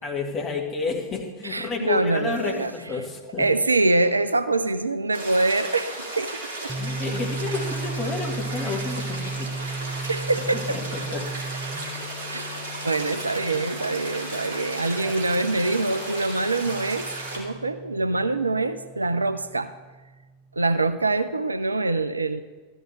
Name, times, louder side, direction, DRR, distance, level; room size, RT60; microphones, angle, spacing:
voice 1, 0.0-3.5 6.8-9.5 9.9-10.1 10.7-11.3 14.7-15.1, left 4 dB, 20° left, -1 dB, 2.0 m, -31 dB
voice 2, 1.4-2.7 3.4-6.7 10.1-10.8 12.3-12.5 12.8-17.1 17.4-19.7 20.6-22.4, right 2 dB, 80° right, 12 dB, 0.4 m, -24 dB
sound 1, 5.1-17.4, right 2 dB, 60° right, 2.5 m, -35 dB
sound 2, 6.7-20.3, right 2 dB, 5° right, 1.0 m, -36 dB
13.5 x 9.9 x 3.3 m, 1.3 s
figure-of-eight pair, 90°, 0 cm